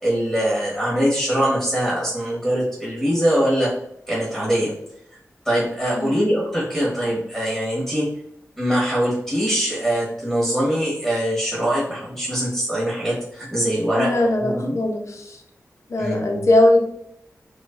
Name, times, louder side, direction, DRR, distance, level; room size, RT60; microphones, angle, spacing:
voice 1, 0.0-3.7 4.1-4.7 5.4-8.1 8.6-14.8 16.0-16.4, equal, 10° right, -7 dB, 1.4 m, -22 dB
voice 2, 13.9-15.4 15.9-16.8, left 1 dB, 65° left, 2 dB, 0.7 m, -20 dB
4.6 x 2.3 x 2.6 m, 0.75 s
wide cardioid pair, 100°, 6 cm